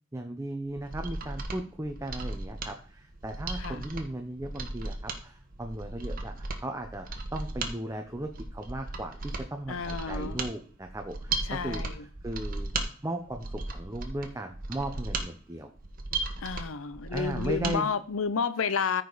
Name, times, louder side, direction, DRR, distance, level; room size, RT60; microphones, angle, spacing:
voice 1, 0.1-12.7 13.0-15.7 17.1-17.9, right 1 dB, 15° right, 0.8 m, -37 dB
Mechanisms, 0.7-17.8 18.1-18.2, right 3 dB, 45° right, 1.2 m, -36 dB
voice 2, 9.7-10.4 11.5-11.9 16.4-19.0, left 5 dB, 90° left, 0.6 m, -31 dB
14.0 x 5.0 x 4.0 m
head